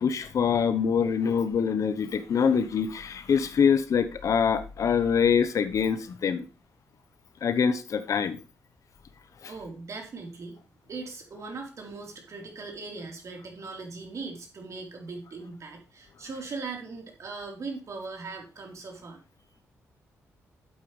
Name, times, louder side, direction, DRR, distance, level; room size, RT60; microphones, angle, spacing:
voice 1, 0.0-6.5 7.4-8.4 9.4-9.5, left 6 dB, 65° left, 12 dB, 1.0 m, -24 dB
voice 2, 9.5-19.2, right 4 dB, 55° right, 1 dB, 4.0 m, -39 dB
11.5 x 8.7 x 3.3 m, 0.32 s
cardioid pair, 65°, 6 cm